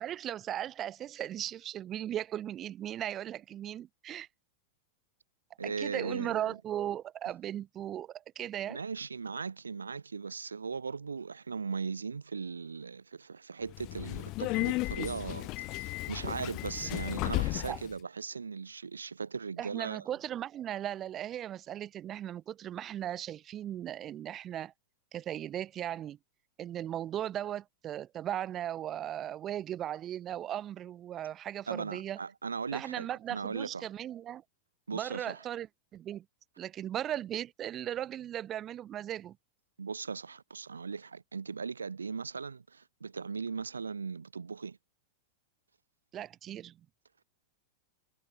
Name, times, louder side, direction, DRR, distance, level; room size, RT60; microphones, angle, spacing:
voice 1, 0.0-4.3 5.6-8.8 17.7-17.8 19.6-24.7 25.1-26.2 26.6-32.2 32.7-34.4 34.9-35.7 35.9-36.2 36.6-39.4 46.1-46.7, right 11 dB, 35° right, 0.7 m, -37 dB
voice 2, 5.6-6.5 8.7-20.1 31.7-33.9 34.9-35.5 39.8-44.8, right 5 dB, 85° right, 0.6 m, -38 dB
Subway metro underground, 13.7-17.9, left 22 dB, 45° left, 2.1 m, -34 dB
figure-of-eight pair, 95°, 0 cm